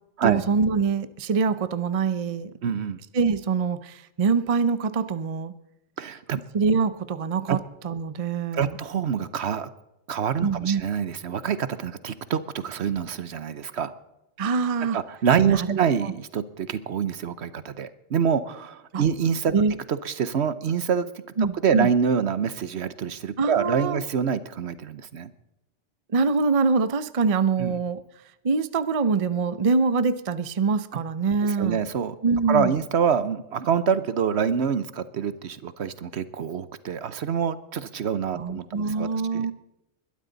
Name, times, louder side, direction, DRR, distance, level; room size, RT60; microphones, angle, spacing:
voice 1, 0.2-2.5 3.1-5.5 6.5-7.6 7.8-8.8 10.4-10.8 14.4-15.0 15.5-16.1 18.9-19.0 19.5-19.7 21.4-21.9 23.4-24.0 26.1-28.0 28.4-31.8 32.2-32.7 38.3-39.5, right 4 dB, 35° right, 13 dB, 0.6 m, -24 dB
voice 2, 2.6-3.0 6.0-6.4 7.5-7.6 8.5-9.7 10.1-13.9 14.9-19.5 19.9-21.1 21.6-25.3 27.6-27.7 31.4-32.1 32.5-39.5, right 7 dB, 65° right, 15 dB, 1.1 m, -26 dB
21.5 x 12.5 x 4.0 m, 0.89 s
omnidirectional pair, 1.3 m